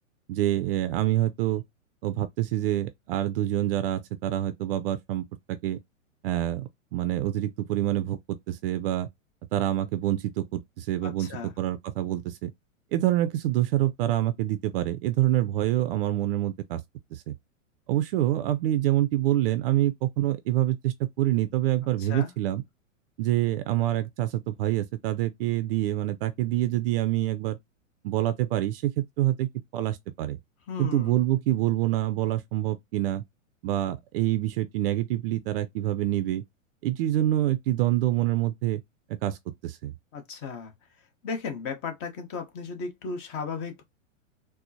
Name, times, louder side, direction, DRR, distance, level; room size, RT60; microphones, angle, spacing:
voice 1, 0.3-1.6 2.0-5.8 6.2-9.1 9.5-12.5 12.9-16.8 17.1-17.3 17.9-22.6 23.2-27.6 28.0-30.4 30.8-33.2 33.6-36.4 36.8-38.8 39.2-39.4 39.6-39.9, right 14 dB, 45° right, 0.4 m, -26 dB
voice 2, 11.0-11.5 22.0-22.3 30.7-31.2 40.1-40.7 41.2-43.8, left 5 dB, 35° left, 1.1 m, -35 dB
4.2 x 2.1 x 2.7 m
hypercardioid pair, 115°, 40 cm